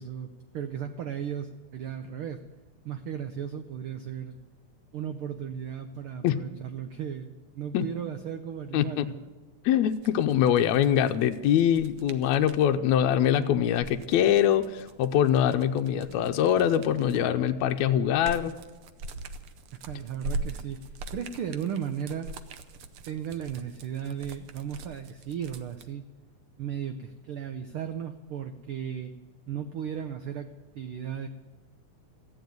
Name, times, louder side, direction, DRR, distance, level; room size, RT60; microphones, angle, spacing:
voice 1, 0.0-2.4 2.8-4.4 4.9-9.3 19.9-22.3 23.1-26.0 26.6-29.1 29.5-30.5 30.7-31.3, right 8 dB, 90° right, 8 dB, 1.1 m, -35 dB
voice 2, 8.7-9.1 9.7-18.5, left 10 dB, 75° left, 7 dB, 1.9 m, -23 dB
sound 1, 9.9-12.7 13.6-17.4 17.8-25.9, right 2 dB, 70° right, 1.4 m, -41 dB
15.0 x 9.4 x 9.3 m, 1.3 s
omnidirectional pair, 3.4 m